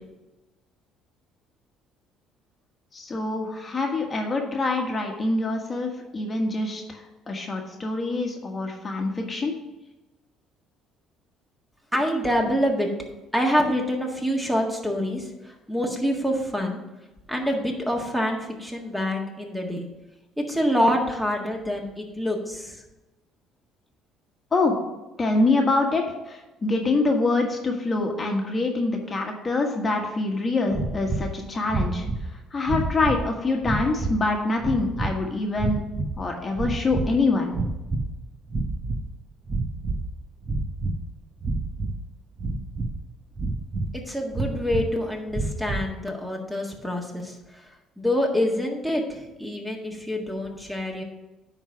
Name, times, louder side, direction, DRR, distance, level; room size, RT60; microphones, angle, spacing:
voice 1, 2.9-9.5 24.5-24.7 25.2-35.9 36.2-37.6, left 3 dB, 30° left, 1 dB, 1.3 m, -25 dB
voice 2, 11.9-12.9 13.3-16.8 17.3-19.9 20.4-22.8 43.9-47.4 48.0-51.0, equal, 5° right, 1 dB, 1.6 m, -26 dB
sound 1, 30.7-31.3 31.7-32.3 32.6-33.3 33.6-34.2 34.6-35.1 35.6-36.2 36.5-37.2 37.5-38.1 38.5-39.0 39.4-40.1 40.4-41.0 41.4-42.0 42.4-43.0 43.3-43.9 44.3-44.9 45.3-45.9, right 2 dB, 30° right, 1.0 m, -28 dB
9.8 x 4.0 x 6.0 m, 1.1 s
supercardioid pair, 90°, 0 cm